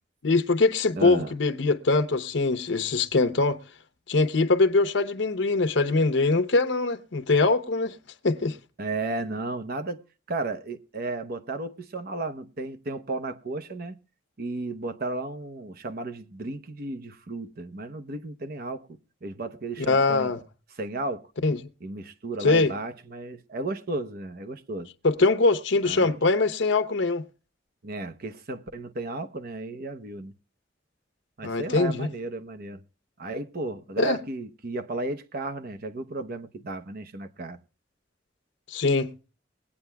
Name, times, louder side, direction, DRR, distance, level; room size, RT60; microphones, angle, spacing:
voice 1, 0.2-3.6 4.1-7.9 8.2-8.6 19.8-20.4 21.4-21.6 22.4-22.7 25.0-27.3 31.4-32.1 34.0-34.2 38.7-39.1, left 3 dB, 75° left, 0.9 m, -22 dB
voice 2, 0.9-1.3 8.8-10.0 10.3-14.0 14.4-20.3 20.8-21.3 21.8-24.9 25.8-26.2 27.8-30.3 31.4-32.8 33.2-37.6, right 2 dB, 55° right, 0.8 m, -34 dB
21.5 x 8.5 x 2.3 m
head